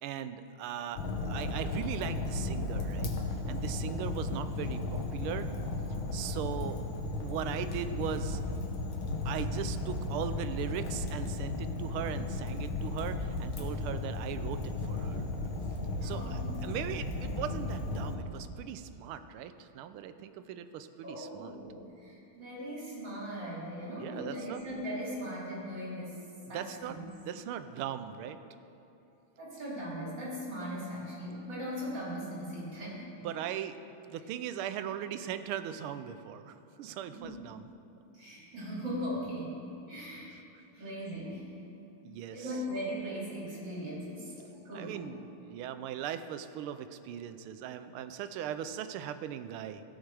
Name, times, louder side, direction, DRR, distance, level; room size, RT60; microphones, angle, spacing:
voice 1, 0.0-3.1 3.5-5.5 6.1-6.9 7.2-8.6 9.2-15.3 16.0-21.5 24.0-24.6 26.5-27.0 27.2-28.4 33.2-33.8 34.1-37.6 42.0-42.6 44.7-49.8, right 9 dB, 85° right, 11 dB, 1.5 m, -39 dB
Fire, 1.0-18.2, left 2 dB, 75° left, 1.7 m, -35 dB
voice 2, 16.0-16.6 21.0-27.1 29.4-33.1 37.1-37.4 38.1-39.6 39.9-40.3 40.7-41.5 42.3-45.0, equal, 55° right, -6 dB, 3.9 m, -39 dB
16.5 x 6.5 x 4.8 m, 2.8 s
omnidirectional pair, 2.3 m